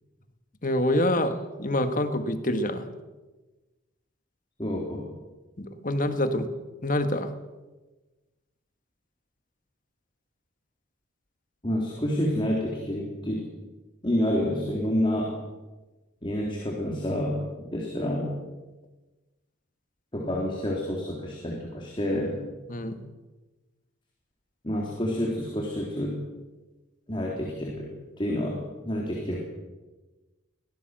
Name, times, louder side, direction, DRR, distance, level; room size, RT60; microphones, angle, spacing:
voice 1, 0.6-2.9 5.6-6.5 6.8-7.3 22.7-23.0, left 1 dB, 40° left, 8 dB, 1.8 m, -26 dB
voice 2, 4.6-5.1 11.6-13.4 14.0-15.4 16.2-18.3 20.1-22.4 24.6-26.2 27.1-27.9 28.2-29.4, equal, 25° left, -2 dB, 3.7 m, -28 dB
24.0 x 17.5 x 7.8 m, 1.2 s
head